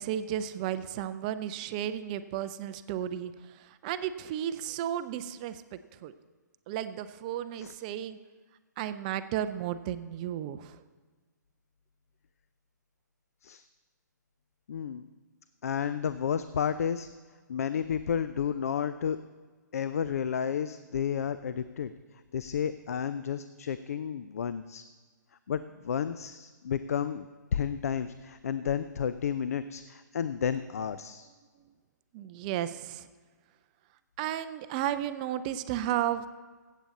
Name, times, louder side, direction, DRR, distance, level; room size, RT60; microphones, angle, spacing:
voice 1, 0.0-3.3 3.6-6.1 6.7-8.2 8.8-10.8 32.1-33.1 34.2-36.3, right 11 dB, 25° right, 12 dB, 0.4 m, -33 dB
voice 2, 14.7-15.1 15.6-17.1 17.5-19.2 19.7-21.9 22.3-24.8 25.5-27.3 27.5-31.3, left 8 dB, 55° left, 13 dB, 0.4 m, -31 dB
15.0 x 8.2 x 4.1 m, 1.4 s
figure-of-eight pair, 130°, 10 cm